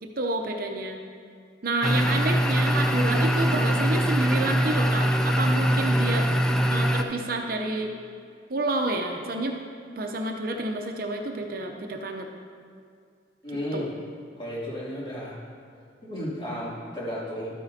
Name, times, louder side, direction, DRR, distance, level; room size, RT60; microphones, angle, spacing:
voice 1, 0.0-1.0 1.6-6.3 6.7-7.9 8.5-9.6 10.0-12.3 13.7-13.9, right 2 dB, 50° right, 3 dB, 0.6 m, -29 dB
sound 1, 1.8-7.0, equal, 5° left, 0.4 m, -23 dB
voice 2, 13.4-13.9 14.4-15.4 16.0-17.5, equal, 25° left, -8 dB, 2.7 m, -33 dB
13.0 x 9.3 x 2.8 m, 2.2 s
head